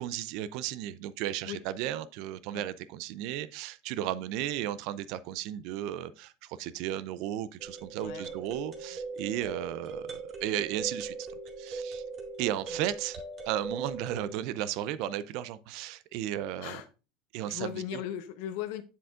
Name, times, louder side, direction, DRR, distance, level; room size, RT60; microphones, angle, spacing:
voice 1, 0.0-11.2 11.6-12.0 12.4-16.8 17.3-18.0, right 12 dB, 65° right, 0.5 m, -34 dB
sound 1, 7.6-14.3, right 3 dB, 40° right, 2.0 m, -40 dB
voice 2, 8.0-8.4 12.7-12.8 16.6-16.9 17.5-18.8, left 11 dB, 70° left, 0.9 m, -37 dB
7.2 x 7.0 x 2.4 m
hypercardioid pair, 90°, 0 cm